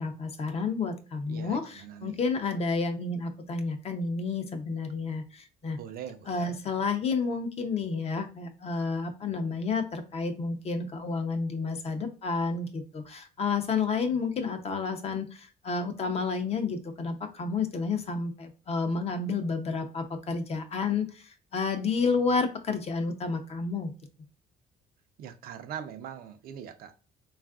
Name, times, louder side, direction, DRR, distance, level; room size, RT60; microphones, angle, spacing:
voice 1, 0.0-5.8 6.3-23.9, left 4 dB, 40° left, 7 dB, 0.5 m, -30 dB
voice 2, 1.3-2.2 5.8-6.5 25.2-26.9, right 9 dB, 60° right, 8 dB, 0.4 m, -42 dB
3.4 x 2.4 x 2.3 m, 0.35 s
cardioid pair, 110°, 17 cm